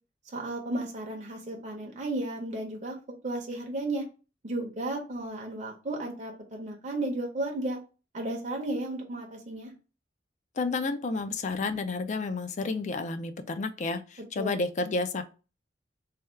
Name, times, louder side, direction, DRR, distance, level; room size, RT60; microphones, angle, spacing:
voice 1, 0.3-3.0 3.2-4.0 4.4-7.8 8.1-9.7 14.4-14.6, right 2 dB, 40° right, 0.7 m, -34 dB
voice 2, 10.6-15.2, left 3 dB, 40° left, 0.4 m, -31 dB
3.4 x 2.3 x 4.3 m
head